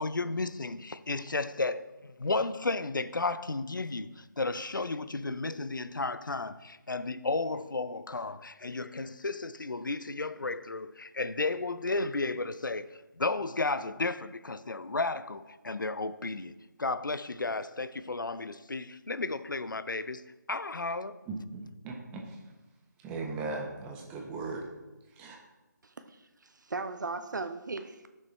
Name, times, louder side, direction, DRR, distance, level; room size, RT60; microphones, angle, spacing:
voice 1, 0.0-16.5 16.8-21.2, left 3 dB, 90° left, 0.6 m, -33 dB
voice 2, 21.3-22.4 23.0-24.6 25.2-25.4, right 3 dB, 10° right, 0.8 m, -38 dB
voice 3, 25.8-26.2 26.4-28.1, right 3 dB, 70° right, 0.7 m, -37 dB
15.0 x 6.4 x 3.2 m
figure-of-eight pair, 155°, 10 cm